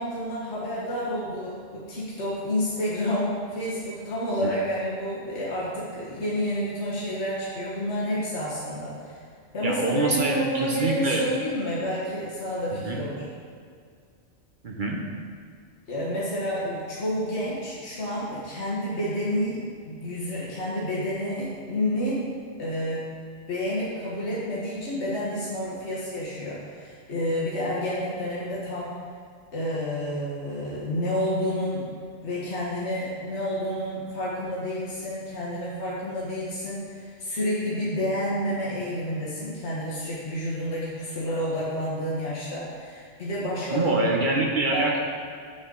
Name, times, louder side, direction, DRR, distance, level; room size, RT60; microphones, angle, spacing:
voice 1, 0.0-9.1 9.5-13.3 15.9-22.3 22.6-23.1 23.5-28.9 29.5-31.9 32.2-43.9 44.7-44.9, equal, 70° left, -7 dB, 1.7 m, -29 dB
voice 2, 9.6-11.2 12.7-13.0 14.6-15.0 43.7-45.0, right 2 dB, 50° right, -1 dB, 1.0 m, -25 dB
8.0 x 6.4 x 3.9 m, 2.1 s
omnidirectional pair, 1.2 m